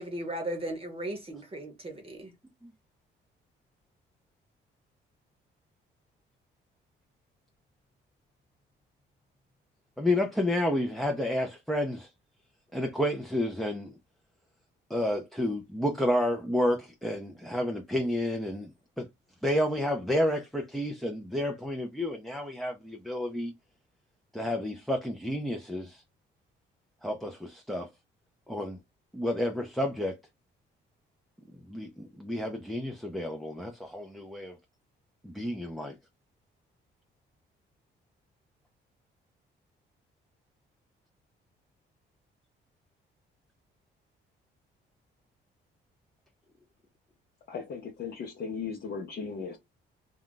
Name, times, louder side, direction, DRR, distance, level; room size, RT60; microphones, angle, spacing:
voice 1, 0.0-2.3, right 1 dB, 30° right, 0.9 m, -36 dB
voice 2, 10.0-12.1 12.7-14.0 14.9-19.1 19.4-23.5 24.3-26.0 27.0-27.9 28.5-28.8 29.1-30.2 31.6-34.6 35.2-35.9, left 1 dB, ahead, 0.5 m, -30 dB
voice 3, 47.5-49.6, left 5 dB, 55° left, 0.7 m, -37 dB
2.3 x 2.2 x 3.7 m
cardioid pair, 90°, 20 cm